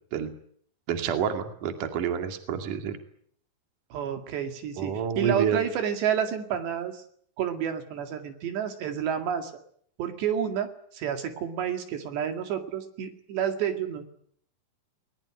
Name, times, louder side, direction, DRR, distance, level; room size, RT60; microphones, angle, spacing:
voice 1, 0.9-3.0 4.8-5.6, right 7 dB, 50° right, 6 dB, 3.5 m, -28 dB
voice 2, 3.9-7.0 7.4-9.5 10.0-14.0, right 9 dB, 70° right, 6 dB, 4.3 m, -30 dB
21.0 x 21.0 x 9.9 m, 0.63 s
omnidirectional pair, 5.2 m